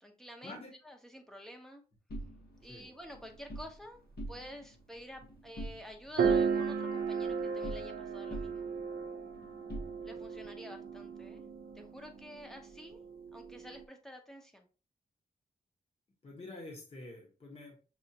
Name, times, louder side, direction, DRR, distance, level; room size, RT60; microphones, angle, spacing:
voice 1, 0.0-1.8 2.6-4.0 4.3-8.7 10.0-11.4 11.7-13.0 13.3-14.7, equal, 5° left, 3 dB, 0.7 m, -49 dB
sound 1, 2.1-3.7 4.1-4.7 5.0-5.9 6.2-8.0 8.3-10.4, right 1 dB, 75° left, 1.2 m, -45 dB
sound 2, 5.2-5.3 6.2-13.8, right 6 dB, 65° right, 0.5 m, -35 dB
voice 2, 16.2-17.7, left 2 dB, 40° left, -2 dB, 1.1 m, -47 dB
6.1 x 2.4 x 2.8 m, 0.36 s
wide cardioid pair, 140°, 17 cm